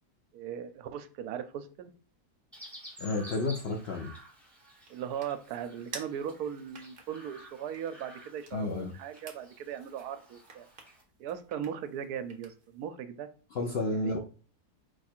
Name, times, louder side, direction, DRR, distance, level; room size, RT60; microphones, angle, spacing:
voice 1, 0.3-1.9 4.9-10.7 11.2-13.3 13.9-14.1, right 8 dB, 75° right, 10 dB, 1.0 m, -38 dB
Chirp tweet, 2.5-11.0, equal, ahead, 1.0 m, -52 dB
voice 2, 3.0-4.1 8.5-8.9 13.5-14.2, left 2 dB, 60° left, 1 dB, 0.6 m, -31 dB
sound 1, 4.2-12.9, right 4 dB, 40° right, 0.8 m, -52 dB
4.7 x 2.4 x 4.3 m, 0.37 s
omnidirectional pair, 1.7 m